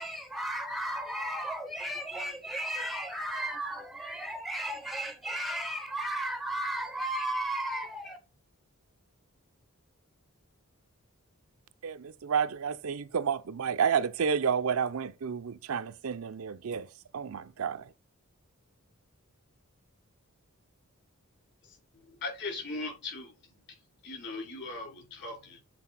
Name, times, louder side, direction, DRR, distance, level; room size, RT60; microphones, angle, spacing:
voice 1, 0.0-8.2, right 1 dB, ahead, 0.5 m, -34 dB
voice 2, 11.8-16.9 17.1-17.9, right 7 dB, 70° right, 0.5 m, -30 dB
voice 3, 21.7-23.3 24.0-25.6, left 3 dB, 55° left, 3.1 m, -39 dB
7.7 x 4.1 x 4.0 m
head